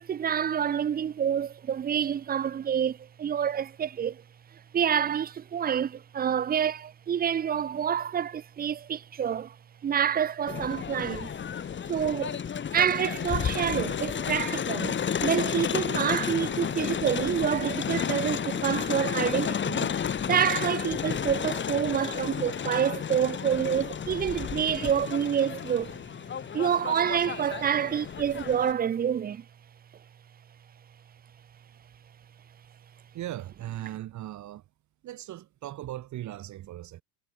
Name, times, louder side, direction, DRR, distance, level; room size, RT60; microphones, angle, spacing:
voice 1, 0.0-4.2 4.7-9.6 9.8-11.3 11.9-12.4 12.7-19.9 20.3-26.0 26.5-29.4, right 8 dB, 20° right, 1.1 m, -27 dB
Crowd, 10.5-28.7, left 8 dB, 25° left, 4.0 m, -32 dB
voice 2, 33.1-34.6 35.0-37.0, right 14 dB, 35° right, 4.3 m, -38 dB
hypercardioid pair, 115°, 46 cm